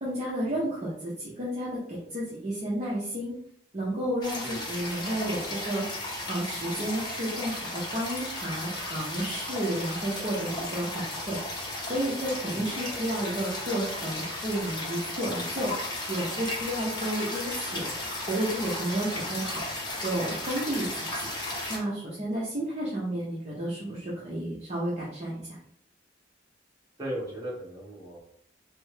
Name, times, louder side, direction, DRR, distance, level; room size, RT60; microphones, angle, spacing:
voice 1, 0.0-3.4 3.7-5.8 6.3-17.9 18.3-19.6 20.0-21.3 21.7-25.6, right 1 dB, 40° right, -7 dB, 0.7 m, -32 dB
sound 1, 4.2-21.8, left 1 dB, 25° left, 0.8 m, -35 dB
voice 2, 12.5-13.1 27.0-28.2, right 1 dB, 20° right, -7 dB, 1.3 m, -38 dB
3.3 x 2.0 x 3.2 m, 0.66 s
head